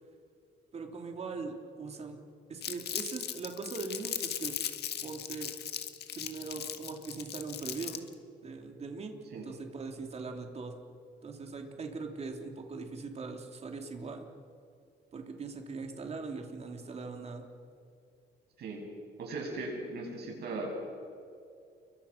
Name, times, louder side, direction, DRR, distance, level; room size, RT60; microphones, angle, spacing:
voice 1, 0.7-2.2 2.5-4.5 5.0-5.5 6.1-8.0 8.4-9.2 9.4-10.7 11.2-14.3 15.1-17.5, right 4 dB, 35° right, 4 dB, 3.0 m, -40 dB
Crumpling crinkling, 2.6-8.1, left 10 dB, 65° left, 1.7 m, -38 dB
voice 2, 19.2-20.7, right 3 dB, 65° right, 0 dB, 7.8 m, -38 dB
29.5 x 23.5 x 5.9 m, 2.5 s
cardioid pair, 140°, 18 cm